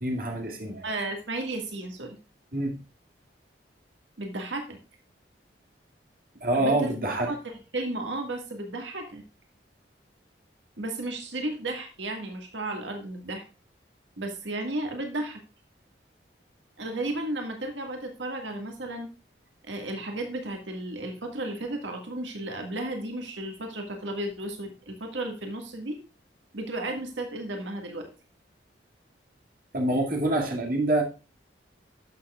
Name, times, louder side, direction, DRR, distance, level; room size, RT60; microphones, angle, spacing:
voice 1, 0.0-0.8 2.5-2.8 6.4-7.3 29.7-31.0, right 1 dB, 50° right, 1 dB, 2.2 m, -26 dB
voice 2, 0.8-2.2 4.2-4.8 6.5-9.2 10.8-13.4 14.2-15.4 16.8-19.1 19.6-26.0 26.5-28.1, right 2 dB, 85° right, 4 dB, 1.8 m, -34 dB
12.5 x 6.9 x 2.4 m, 0.31 s
head